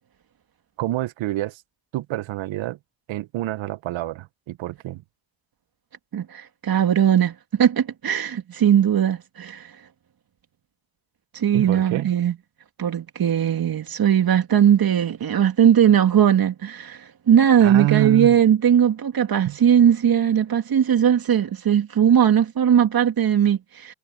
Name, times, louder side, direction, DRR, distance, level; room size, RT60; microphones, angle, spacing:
voice 1, 0.8-1.6 1.9-2.8 3.1-5.0 11.5-12.1 17.6-18.4 19.4-19.6, right 16 dB, 70° right, 1.2 m, -27 dB
voice 2, 6.1-9.7 11.3-12.3 12.8-23.9, right 9 dB, 45° right, 2.7 m, -19 dB
cardioid pair, 85°, 48 cm